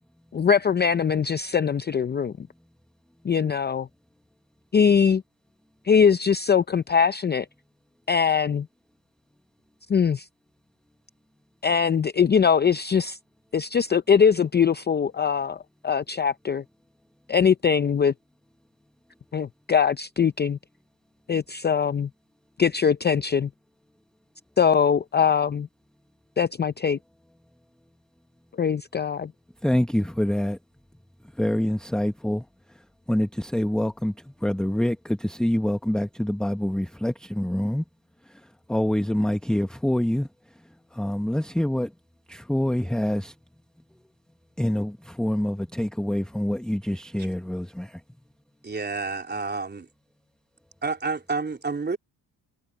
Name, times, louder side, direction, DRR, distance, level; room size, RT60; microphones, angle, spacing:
voice 1, 0.3-2.3 3.2-3.9 4.7-5.2 5.8-7.5 8.1-8.7 9.9-10.3 11.6-13.2 13.5-16.6 17.3-18.1 19.3-20.6 21.3-22.1 22.6-23.5 24.6-25.7 26.4-27.0 28.6-29.3, left 6 dB, 25° left, 0.6 m, -22 dB
voice 2, 29.6-30.6 31.3-32.4 32.7-32.8 33.1-37.8 38.3-40.3 40.9-41.9 42.3-43.3 44.6-48.0, left 1 dB, ahead, 1.1 m, -26 dB
voice 3, 48.6-49.9 50.8-52.0, right 4 dB, 25° right, 3.9 m, -29 dB
cardioid pair, 100°, 43 cm